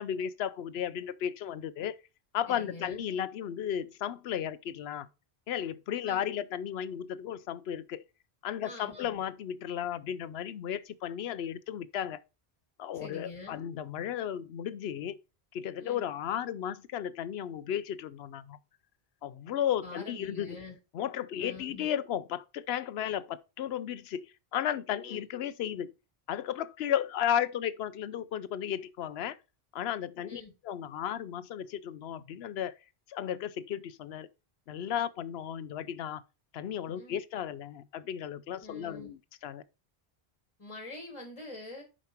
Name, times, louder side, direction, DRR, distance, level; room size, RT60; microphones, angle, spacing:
voice 1, 0.0-1.9 2.3-5.1 5.5-8.0 8.4-12.2 12.8-15.2 15.5-18.6 19.2-20.6 20.9-25.9 26.3-29.4 29.7-32.7 33.1-34.3 34.7-36.2 36.5-39.6, left 9 dB, 80° left, 0.8 m, -34 dB
voice 2, 2.5-3.1 6.0-6.2 8.6-9.2 12.9-13.6 15.8-16.0 19.8-20.8 21.4-21.9 25.0-25.2 30.3-30.5 36.9-37.2 38.6-39.1 40.6-41.8, left 2 dB, 30° left, 1.6 m, -45 dB
7.1 x 5.2 x 4.4 m
omnidirectional pair, 1.0 m